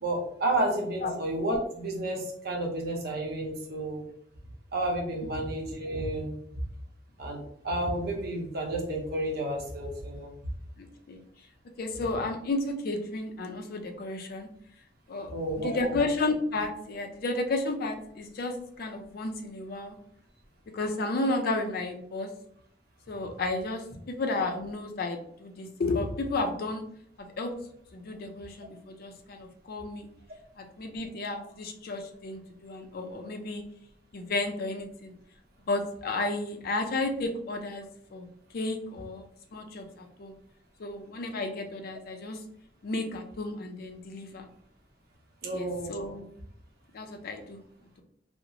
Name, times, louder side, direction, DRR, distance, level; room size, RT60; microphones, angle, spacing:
voice 1, 0.0-4.1 4.7-6.3 7.2-10.3 15.3-16.0 45.4-46.0, right 1 dB, 60° right, 0 dB, 0.7 m, -31 dB
voice 2, 10.8-11.2 11.8-14.5 15.1-15.3 15.6-19.9 20.7-22.3 23.1-26.8 27.2-27.5 27.9-30.1 30.6-33.6 34.1-35.1 35.7-38.2 38.5-39.3 39.5-40.3 40.8-42.4 42.8-44.5 45.5-46.3 46.9-47.6, left 2 dB, 55° left, 4 dB, 0.4 m, -32 dB
2.8 x 2.0 x 2.6 m, 0.68 s
head